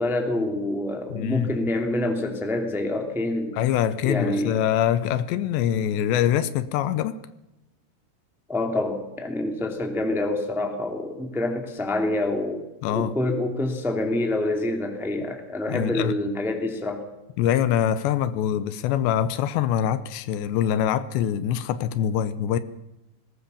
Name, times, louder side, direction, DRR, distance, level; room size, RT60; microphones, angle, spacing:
voice 1, 0.0-3.5 4.0-4.6 8.5-12.6 12.9-17.0, left 1 dB, ahead, 1.5 m, -26 dB
voice 2, 1.1-1.5 3.5-7.2 12.8-13.2 15.7-16.2 17.4-22.6, left 10 dB, 80° left, 2.9 m, -24 dB
20.0 x 19.5 x 7.1 m
omnidirectional pair, 5.2 m